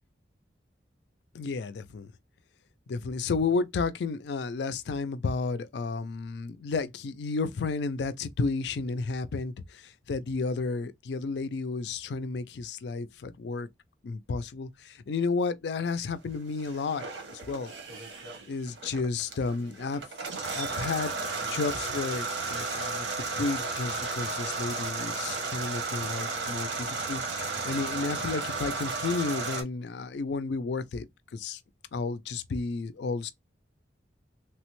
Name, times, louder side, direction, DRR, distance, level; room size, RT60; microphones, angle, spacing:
voice 1, 1.3-2.1 2.9-13.7 14.0-17.1 17.5-17.7 18.5-20.0 20.5-21.1 21.5-23.1 23.3-31.1 31.3-31.6 31.9-33.3, left 4 dB, 70° left, 0.4 m, -32 dB
sound 1, 16.5-29.6, right 3 dB, 85° right, 0.9 m, -34 dB
3.3 x 2.1 x 3.0 m
head